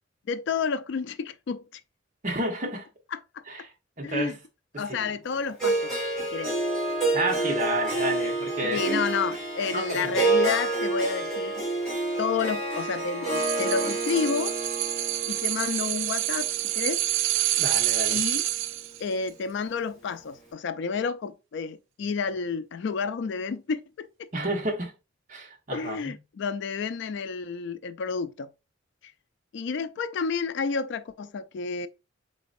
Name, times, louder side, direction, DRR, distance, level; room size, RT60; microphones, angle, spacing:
voice 1, 0.3-1.8 3.1-3.4 4.0-4.4 4.8-5.9 6.3-6.5 8.6-11.6 12.2-14.6 15.3-17.0 18.1-18.4 19.0-24.3 25.7-28.5 29.5-31.9, left 5 dB, 65° left, 0.4 m, -30 dB
voice 2, 2.2-2.9 3.5-4.4 4.7-5.1 7.1-9.0 9.7-10.2 17.5-18.2 24.3-24.9 25.3-26.2, right 1 dB, 45° right, 1.1 m, -31 dB
Harp, 5.6-17.7, right 2 dB, 5° left, 2.0 m, -29 dB
sound 1, 13.3-19.0 19.3-19.4, right 14 dB, 85° right, 0.3 m, -27 dB
4.3 x 3.9 x 2.5 m
head